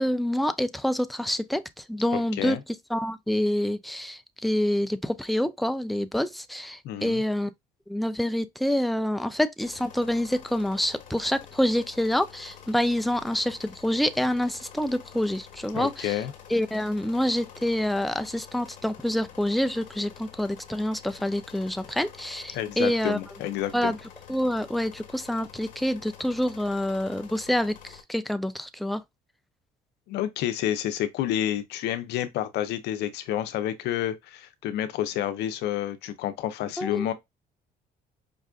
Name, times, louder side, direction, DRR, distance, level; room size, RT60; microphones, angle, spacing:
voice 1, 0.0-1.6 1.9-2.6 2.9-7.5 7.9-16.2 16.5-23.2 23.7-24.0 24.3-29.0 36.8-37.1, left 1 dB, ahead, 0.3 m, -27 dB
voice 2, 2.1-2.6 6.8-7.2 15.7-16.3 22.5-24.0 30.1-37.1, left 12 dB, 80° left, 0.6 m, -29 dB
sound 1, 9.6-28.0, left 8 dB, 50° left, 1.2 m, -48 dB
5.2 x 2.4 x 2.3 m
cardioid pair, 110°, 17 cm